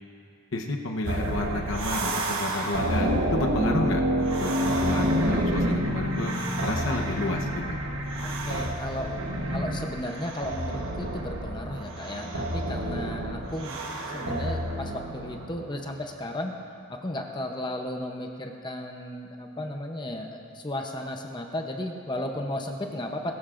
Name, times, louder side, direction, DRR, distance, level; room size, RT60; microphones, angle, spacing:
voice 1, 0.5-6.4 6.6-7.8, left 2 dB, 65° left, 1 dB, 0.9 m, -31 dB
sound 1, 1.0-15.6, right 1 dB, 75° right, 1.3 m, -28 dB
voice 2, 8.5-9.2 9.5-13.7 14.0-16.5 16.9-23.3, left 1 dB, 20° left, 3 dB, 0.8 m, -34 dB
21.5 x 14.0 x 2.6 m, 2.5 s
head